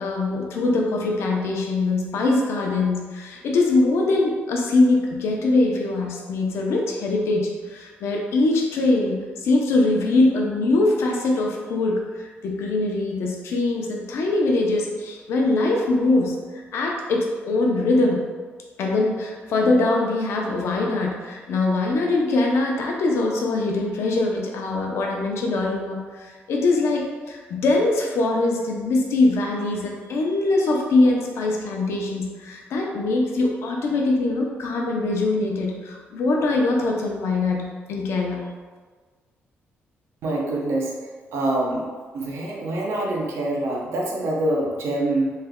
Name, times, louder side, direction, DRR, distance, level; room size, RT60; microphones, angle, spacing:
voice 1, 0.0-16.3 16.7-18.2 18.8-38.4, left 2 dB, 75° left, 0 dB, 0.6 m, -22 dB
voice 2, 40.2-41.9 42.1-45.3, right 1 dB, 80° right, -2 dB, 0.7 m, -25 dB
3.2 x 2.2 x 3.5 m, 1.5 s
cardioid pair, 135°, 4 cm